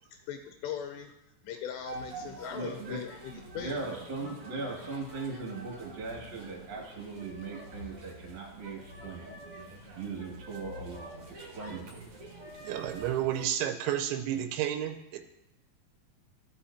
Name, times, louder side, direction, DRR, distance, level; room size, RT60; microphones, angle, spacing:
voice 1, 0.1-1.1 1.4-3.9, left 9 dB, 80° left, 5 dB, 2.6 m, -40 dB
sound 1, 1.8-13.4, right 2 dB, 55° right, 1.5 m, -47 dB
voice 2, 2.5-3.0 3.3-9.4 9.9-12.0, right 3 dB, 40° right, -2 dB, 1.7 m, -39 dB
voice 3, 12.6-15.2, right 11 dB, 90° right, 7 dB, 2.9 m, -31 dB
15.0 x 5.7 x 2.8 m, 0.91 s
omnidirectional pair, 5.1 m